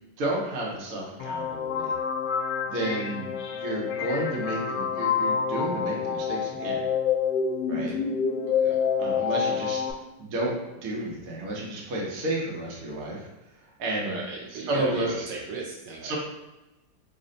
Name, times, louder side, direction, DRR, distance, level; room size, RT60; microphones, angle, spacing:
voice 1, 0.2-1.9 2.6-3.3 3.6-6.8 7.7-8.0 9.0-13.3 13.8-14.2 14.5-15.3 16.0-16.2, right 1 dB, 55° right, -3 dB, 1.1 m, -31 dB
sound 1, 1.2-9.9, left 6 dB, 75° left, 1.2 m, -27 dB
voice 2, 14.0-16.2, right 3 dB, 75° right, -3 dB, 1.2 m, -36 dB
3.2 x 2.2 x 3.8 m, 1.0 s
omnidirectional pair, 2.0 m